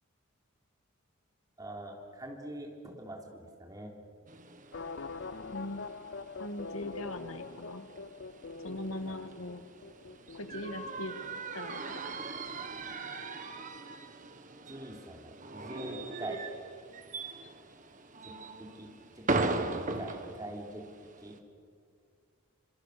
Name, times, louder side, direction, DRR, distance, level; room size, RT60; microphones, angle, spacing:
voice 1, 1.6-3.9 9.1-9.2 14.7-16.4 18.2-18.9 19.2-19.3 19.6-20.9 21.2-21.4, right 1 dB, 15° right, 1 dB, 3.5 m, -44 dB
sound 1, 4.3-21.4, right 3 dB, 35° right, 1.6 m, -39 dB
sound 2, 4.7-13.2 13.5-13.6, left 4 dB, 55° left, 0.6 m, -45 dB
voice 2, 5.5-5.8 6.4-7.9 8.6-9.6 10.3-11.1 11.5-12.2, left 1 dB, 85° left, 9 dB, 1.7 m, -40 dB
27.0 x 26.5 x 6.7 m, 2.3 s
head